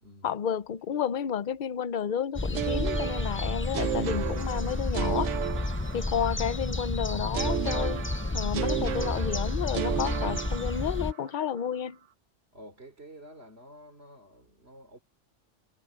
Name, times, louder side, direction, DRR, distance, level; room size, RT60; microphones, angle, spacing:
voice 1, 0.2-5.3 5.9-12.0, left 8 dB, 50° left, 0.8 m, -31 dB
sound 1, 2.4-11.1, left 2 dB, 15° left, 0.4 m, -31 dB
sound 2, 2.5-6.5 7.3-11.2, right 10 dB, 85° right, 1.0 m, -33 dB
voice 2, 12.5-15.0, equal, 60° right, 4.0 m, -50 dB
omnidirectional pair, 1.2 m